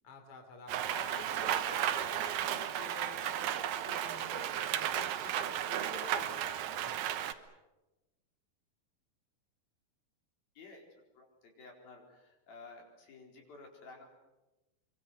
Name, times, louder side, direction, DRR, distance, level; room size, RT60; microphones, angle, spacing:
voice 1, 0.0-4.5 4.8-6.5 6.8-7.0, left 5 dB, 40° left, 5 dB, 3.9 m, -50 dB
Rain, 0.7-7.3, right 10 dB, 70° right, 2.7 m, -34 dB
voice 2, 10.6-10.9 11.1-14.0, left 3 dB, 70° left, 1 dB, 6.0 m, -53 dB
25.5 x 24.0 x 7.9 m, 1.0 s
omnidirectional pair, 4.4 m